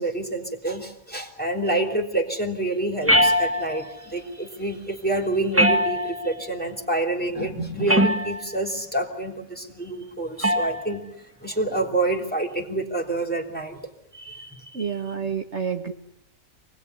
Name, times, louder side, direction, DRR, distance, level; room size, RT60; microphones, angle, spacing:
voice 1, 0.0-11.0 11.4-13.8 14.1-14.9, right 2 dB, 5° left, 3 dB, 3.3 m, -27 dB
sound 1, 3.1-3.9 5.5-6.4 7.9-8.6 10.4-10.8, equal, 10° right, 1.8 m, -21 dB
voice 2, 14.7-15.9, right 6 dB, 55° right, 4 dB, 1.9 m, -28 dB
26.5 x 20.0 x 9.6 m, 0.80 s
omnidirectional pair, 1.5 m